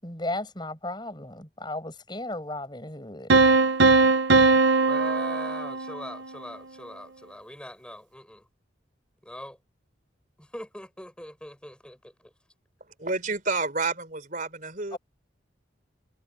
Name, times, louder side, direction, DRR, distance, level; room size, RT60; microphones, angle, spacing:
voice 1, 0.0-3.3 14.9-15.0, left 1 dB, 25° left, 5.7 m, -35 dB
sound 1, 3.3-6.2, right 3 dB, 70° right, 1.1 m, -20 dB
voice 2, 4.7-8.5 9.2-9.6 10.4-12.3, left 1 dB, 5° left, 7.2 m, -42 dB
voice 3, 13.0-15.0, right 3 dB, 45° right, 4.3 m, -29 dB
head